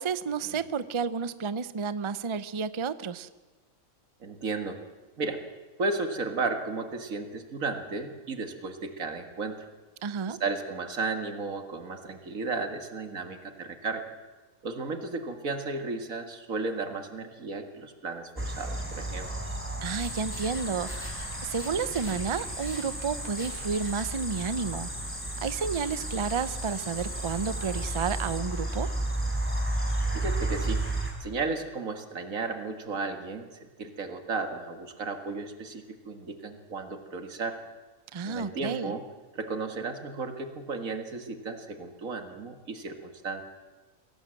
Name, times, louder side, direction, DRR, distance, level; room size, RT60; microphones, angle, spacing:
voice 1, 0.0-3.3 10.0-10.4 19.8-24.9 25.4-28.9 38.1-38.9, right 6 dB, 35° right, 14 dB, 0.5 m, -31 dB
voice 2, 4.2-4.8 5.2-5.4 5.8-9.7 10.3-14.1 14.6-19.3 30.1-30.8 31.2-37.6 38.3-39.0 39.3-43.4, right 3 dB, 85° right, 6 dB, 2.2 m, -34 dB
sound 1, 18.4-31.1, right 1 dB, 10° right, 3.7 m, -33 dB
sound 2, 19.8-28.4, equal, 10° left, 2.5 m, -40 dB
23.0 x 17.0 x 7.7 m, 1.3 s
omnidirectional pair, 1.4 m